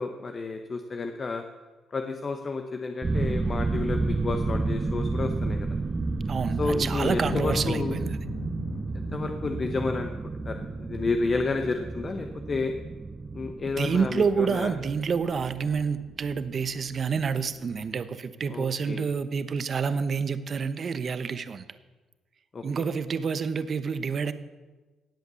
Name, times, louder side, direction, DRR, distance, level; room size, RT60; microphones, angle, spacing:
voice 1, 0.0-1.4 1.9-5.7 6.6-8.0 9.1-10.1 10.4-12.7 13.3-14.7 18.5-19.1 22.5-22.6, left 3 dB, 40° left, 5 dB, 1.1 m, -30 dB
sound 1, 3.0-17.5 17.8-17.9, right 3 dB, 25° right, 0.9 m, -31 dB
voice 2, 6.3-8.2 13.8-21.6 22.6-24.3, right 5 dB, 45° right, 12 dB, 1.0 m, -28 dB
sound 2, 7.2-10.8, left 3 dB, 80° left, 2.1 m, -39 dB
18.0 x 8.0 x 7.0 m, 1.2 s
cardioid pair, 90°, 0 cm